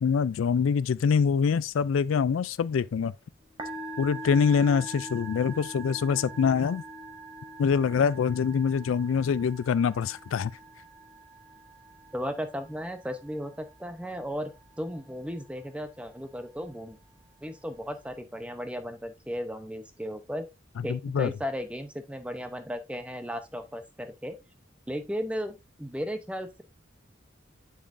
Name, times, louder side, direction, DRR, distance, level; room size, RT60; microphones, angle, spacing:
voice 1, 0.0-3.1 4.0-6.8 7.6-10.5 20.8-21.3, left 6 dB, 90° left, 0.4 m, -25 dB
Musical instrument, 3.4-18.2, right 2 dB, 20° right, 1.3 m, -45 dB
voice 2, 12.1-14.5 14.8-17.0 17.4-20.5 20.8-24.4 24.9-26.6, equal, 5° right, 0.7 m, -35 dB
7.4 x 7.0 x 2.6 m
head